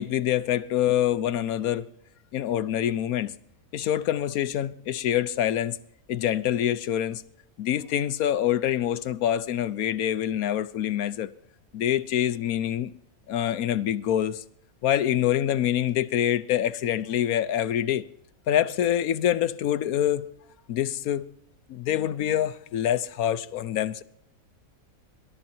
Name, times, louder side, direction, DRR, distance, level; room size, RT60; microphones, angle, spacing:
voice 1, 0.0-1.9 2.3-3.3 3.7-5.8 6.1-7.2 7.6-11.3 11.7-12.9 13.3-14.4 14.8-18.0 18.5-20.3 20.7-21.3 21.7-24.0, left 11 dB, 90° left, 1.2 m, -25 dB
26.0 x 12.5 x 2.8 m
omnidirectional pair, 1.5 m